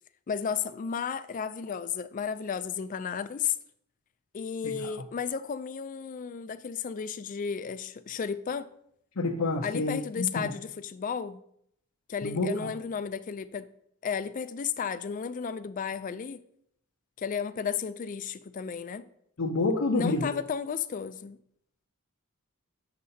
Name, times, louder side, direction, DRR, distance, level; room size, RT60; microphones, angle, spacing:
voice 1, 0.3-3.6 4.3-8.7 9.6-11.4 12.1-13.7 14.0-16.4 17.2-19.0 19.9-21.4, left 6 dB, 40° left, 0.3 m, -33 dB
voice 2, 9.2-10.5 12.2-12.7 19.4-20.3, left 2 dB, 80° left, 0.7 m, -28 dB
8.1 x 6.6 x 2.7 m
head